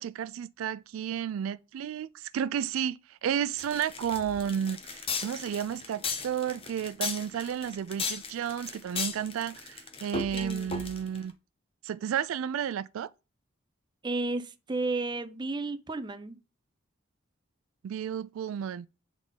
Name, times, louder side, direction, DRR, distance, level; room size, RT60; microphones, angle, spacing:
voice 1, 0.0-11.3 11.8-13.1 17.8-18.9, right 8 dB, 85° right, 0.3 m, -32 dB
sound 1, 3.6-11.2, left 4 dB, 30° left, 0.8 m, -36 dB
voice 2, 10.3-10.9 14.0-16.4, right 2 dB, 20° right, 0.5 m, -33 dB
8.1 x 3.5 x 3.8 m
head